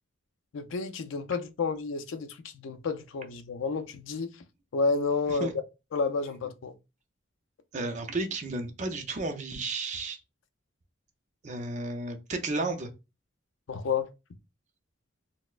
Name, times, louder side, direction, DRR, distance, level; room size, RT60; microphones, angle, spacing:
voice 1, 0.5-4.3 4.7-5.5 5.9-6.7 13.7-14.1, left 4 dB, 90° left, 0.4 m, -30 dB
voice 2, 7.7-10.2 11.4-12.9, right 2 dB, 40° right, 0.5 m, -33 dB
4.0 x 2.1 x 2.4 m
head